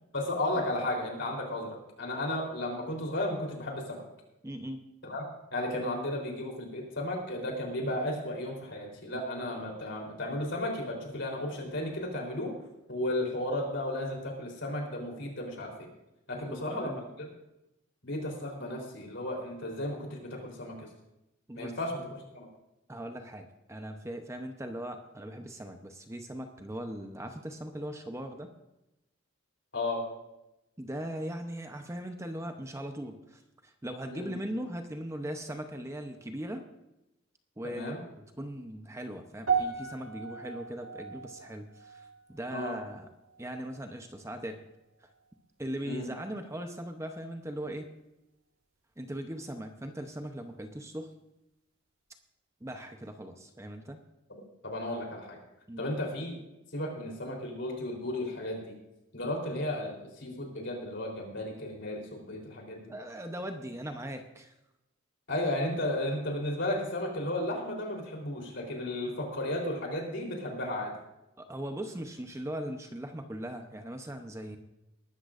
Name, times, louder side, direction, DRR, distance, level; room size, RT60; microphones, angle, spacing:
voice 1, 0.1-4.0 5.0-5.2 5.5-12.5 12.9-15.9 16.3-17.3 18.0-20.9 21.5-22.0 22.3-22.5 29.7-30.0 34.1-34.3 37.6-38.0 42.5-42.8 45.8-46.1 54.3-55.4 55.8-56.3 56.7-58.7 59.1-62.9 65.3-70.9, left 1 dB, 60° left, 1 dB, 3.7 m, -34 dB
voice 2, 4.4-4.9 16.5-17.0 21.5-21.7 22.9-28.5 30.8-36.7 37.6-43.1 43.4-44.6 45.0-45.1 45.6-47.9 49.0-51.1 52.6-54.0 55.7-55.9 62.9-64.5 71.4-74.6, right 1 dB, 15° right, 5 dB, 0.8 m, -39 dB
sound 1, 39.5-43.9 44.1-44.5 45.2-45.3, right 6 dB, 85° right, 1.7 m, -36 dB
20.0 x 13.0 x 2.5 m, 0.92 s
head